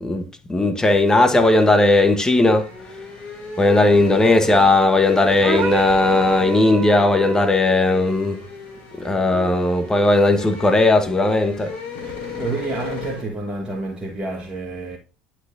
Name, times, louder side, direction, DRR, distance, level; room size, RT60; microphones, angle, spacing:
voice 1, 0.0-2.7 3.6-8.4 9.0-11.7, left 2 dB, 15° left, 1.6 m, -17 dB
sound 1, 1.5-13.2, left 5 dB, 60° left, 3.4 m, -35 dB
sound 2, 5.4-7.6, right 7 dB, 40° right, 1.0 m, -28 dB
voice 2, 12.4-15.0, right 3 dB, 20° right, 1.6 m, -28 dB
10.0 x 6.0 x 2.7 m
figure-of-eight pair, 65°, 5 cm